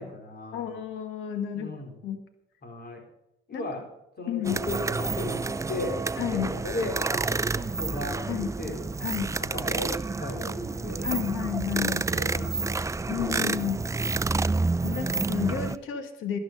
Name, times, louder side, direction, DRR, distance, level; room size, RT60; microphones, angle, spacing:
voice 1, 0.0-0.8 1.5-2.0 2.6-3.0 3.5-3.9 4.2-6.0 6.4-8.8 9.4-11.5 11.8-13.1, left 2 dB, 50° left, 3 dB, 4.6 m, -36 dB
voice 2, 0.5-1.7 2.0-2.2 3.5-3.6 4.3-4.6 6.2-6.5 8.3-8.5 9.0-9.3 11.0-12.0 12.4-12.5 13.1-13.8 14.8-16.4, left 9 dB, 85° left, 8 dB, 1.7 m, -31 dB
sound 1, 4.4-15.8, right 3 dB, 15° right, 0.5 m, -29 dB
12.0 x 11.5 x 5.4 m, 0.84 s
cardioid pair, 90°, 20 cm